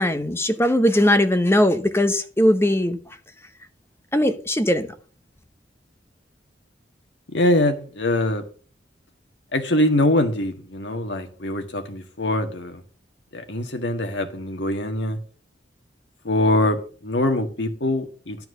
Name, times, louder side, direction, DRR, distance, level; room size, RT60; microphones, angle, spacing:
voice 1, 0.0-3.0 4.1-4.9, left 1 dB, 15° left, 0.9 m, -19 dB
voice 2, 7.3-8.4 9.5-12.8 13.3-15.2 16.2-18.4, left 1 dB, 70° left, 1.6 m, -23 dB
11.5 x 4.6 x 6.6 m
head